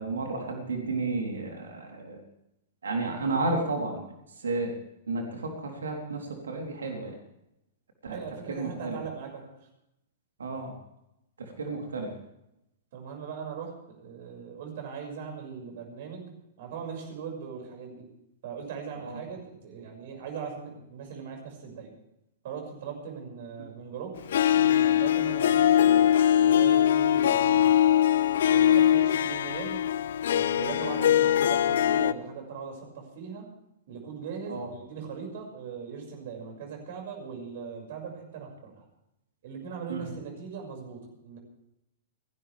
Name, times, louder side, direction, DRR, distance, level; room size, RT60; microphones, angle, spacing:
voice 1, 0.0-2.2 2.8-4.1 4.4-4.7 5.1-7.2 8.0-8.2 8.5-9.0 10.4-10.7 11.4-12.1 19.0-19.2 23.6-23.7 27.5-27.6 34.5-34.7 39.9-40.1, right 3 dB, 80° right, 2 dB, 3.7 m, -32 dB
voice 2, 8.1-9.4 11.7-11.8 12.9-18.1 18.4-21.9 22.4-24.1 24.5-27.7 28.5-29.8 30.3-33.4 33.9-38.8 39.4-41.4, right 6 dB, 55° right, 2 dB, 6.2 m, -40 dB
Harp, 24.3-32.1, left 10 dB, 65° left, 0.5 m, -22 dB
29.5 x 11.5 x 3.5 m, 0.85 s
hypercardioid pair, 110°, 0 cm